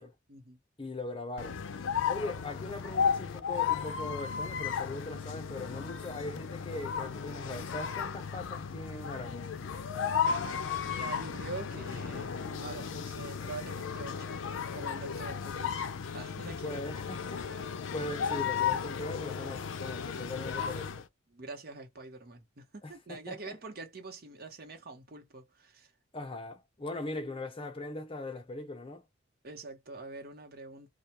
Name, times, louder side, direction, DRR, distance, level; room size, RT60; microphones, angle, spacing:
voice 1, 0.0-0.6 10.8-14.4 14.7-15.9 16.1-16.8 21.3-25.9 29.4-30.9, right 3 dB, 50° right, 0.9 m, -45 dB
voice 2, 0.8-1.6 2.1-9.5 16.6-17.6 17.9-21.0 22.8-23.6 26.1-29.0, left 2 dB, 30° left, 0.7 m, -40 dB
sound 1, 1.4-21.1, left 7 dB, 75° left, 0.4 m, -34 dB
2.3 x 2.2 x 2.8 m
head